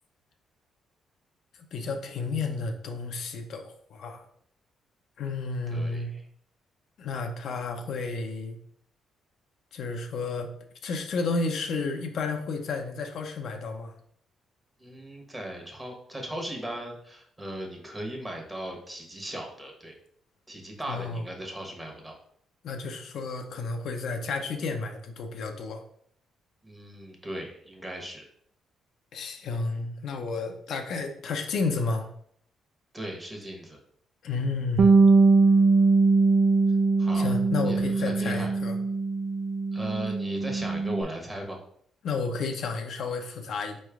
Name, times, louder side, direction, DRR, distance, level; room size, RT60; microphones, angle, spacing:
voice 1, 1.7-4.2 5.2-6.1 7.0-8.6 9.7-10.5 10.8-13.9 20.9-21.2 22.6-25.8 29.1-32.1 34.2-34.9 37.1-38.8 42.0-43.8, left 3 dB, 70° left, 4 dB, 0.6 m, -31 dB
voice 2, 5.7-6.2 14.8-19.9 20.5-22.1 26.6-28.2 32.9-33.8 37.0-37.3 37.6-38.5 39.7-41.6, right 1 dB, 15° right, 1 dB, 1.2 m, -37 dB
Bass guitar, 34.8-41.0, right 3 dB, 60° right, 0.3 m, -22 dB
4.3 x 3.2 x 3.5 m, 0.64 s
cardioid pair, 90°, 0 cm